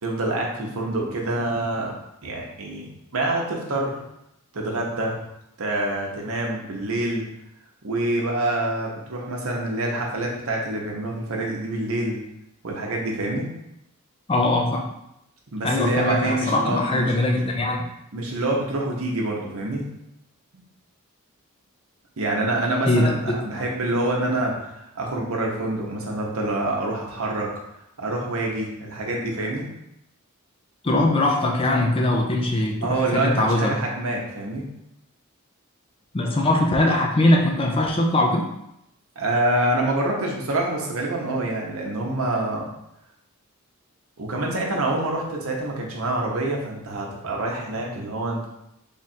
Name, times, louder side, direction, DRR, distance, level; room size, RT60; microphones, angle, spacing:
voice 1, 0.0-1.9 2.2-4.0 4.5-5.2 5.6-7.2 7.8-12.2 12.6-13.5 15.5-17.1 18.1-19.8 22.2-27.5 28.0-29.6 32.8-34.6 39.2-42.7 44.2-48.5, right 2 dB, 70° right, -1 dB, 0.8 m, -26 dB
voice 2, 14.3-14.8 15.6-17.9 22.9-23.4 30.8-33.7 36.1-38.5, left 1 dB, 25° left, 0 dB, 0.4 m, -21 dB
3.5 x 2.5 x 4.2 m, 0.83 s
head